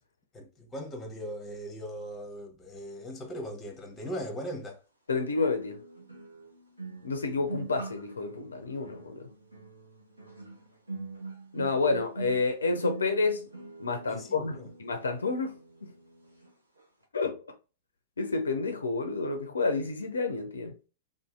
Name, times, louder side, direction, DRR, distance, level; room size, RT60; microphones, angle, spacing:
voice 1, 0.3-4.8 14.1-14.7, equal, 15° left, 0.8 m, -39 dB
sound 1, 4.0-4.1 5.4-16.5 16.8-17.0, right 3 dB, 85° right, 0.8 m, -44 dB
voice 2, 5.1-5.8 7.0-9.3 11.5-13.5 13.8-15.9 17.1-17.4 18.2-20.8, left 3 dB, 70° left, 0.4 m, -30 dB
2.7 x 2.5 x 2.3 m
figure-of-eight pair, 100°, 0 cm